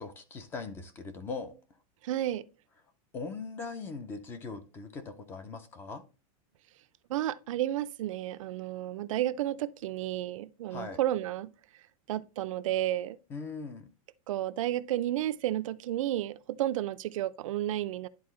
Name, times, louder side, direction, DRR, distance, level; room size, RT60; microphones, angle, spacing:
voice 1, 0.0-1.5 3.1-6.0 10.7-11.0 13.3-13.9, left 4 dB, 10° left, 0.4 m, -40 dB
voice 2, 2.0-2.5 7.1-11.5 12.1-13.2 14.3-18.1, right 13 dB, 65° right, 0.4 m, -32 dB
10.5 x 4.0 x 3.1 m
supercardioid pair, 175°, 18 cm